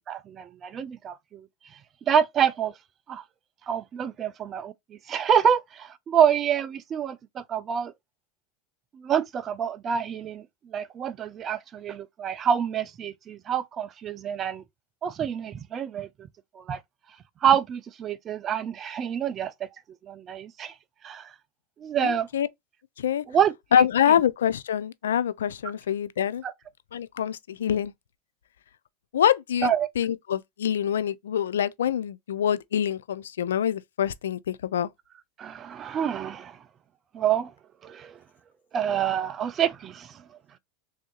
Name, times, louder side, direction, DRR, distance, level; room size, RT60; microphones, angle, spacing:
voice 1, 0.1-1.5 2.1-2.7 3.1-3.2 3.7-7.9 8.9-14.6 15.0-16.1 16.5-16.8 17.4-19.5 20.0-20.7 21.0-21.3 21.8-22.3 23.3-23.9 26.4-26.5 29.6-29.9 35.4-36.6 37.1-37.5 37.8-38.2 38.7-40.1, right 8 dB, 35° right, 0.5 m, -27 dB
voice 2, 22.0-22.5 23.0-23.2 23.7-26.4 26.9-27.9 29.1-29.7 30.0-34.9, left 9 dB, 90° left, 0.3 m, -25 dB
3.4 x 2.7 x 3.8 m
hypercardioid pair, 105°, 0 cm